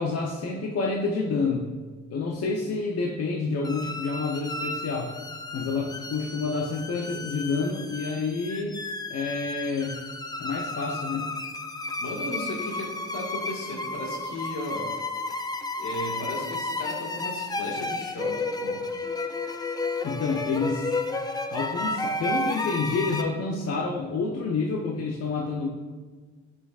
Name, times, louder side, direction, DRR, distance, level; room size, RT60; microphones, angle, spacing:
voice 1, 0.0-1.7 2.1-5.1 5.5-8.8 9.1-10.0 10.4-11.3 20.0-21.0 21.5-25.7, left 4 dB, 55° left, -1 dB, 0.9 m, -28 dB
sound 1, 3.6-23.2, left 2 dB, 15° left, 0.5 m, -32 dB
voice 2, 12.0-14.8 15.8-18.8, left 1 dB, 75° left, -1 dB, 1.8 m, -35 dB
8.9 x 6.4 x 2.5 m, 1.4 s
cardioid pair, 90°, 30 cm